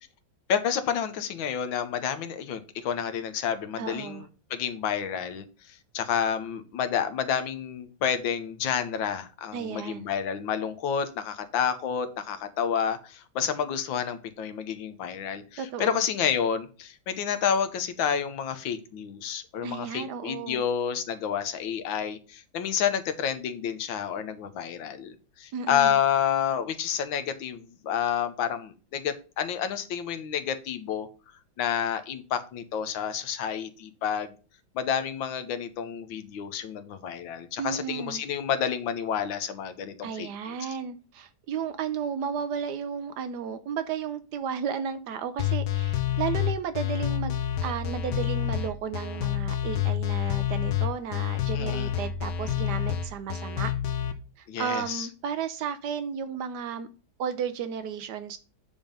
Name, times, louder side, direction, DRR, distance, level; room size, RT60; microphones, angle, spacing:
voice 1, 0.5-4.2 4.5-5.4 5.9-25.1 25.4-31.1 31.6-34.3 34.7-40.3 51.5-51.9 54.5-55.1, left 8 dB, 85° left, 9 dB, 1.6 m, -29 dB
voice 2, 3.8-4.3 9.5-10.1 15.6-16.0 19.6-20.6 25.5-26.0 37.6-38.2 40.0-47.3 47.6-53.7 54.4-56.9 57.2-58.4, right 7 dB, 70° right, 11 dB, 1.1 m, -33 dB
sound 1, 45.4-54.1, left 11 dB, 70° left, 1.3 m, -28 dB
8.8 x 3.6 x 5.2 m, 0.36 s
omnidirectional pair, 2.1 m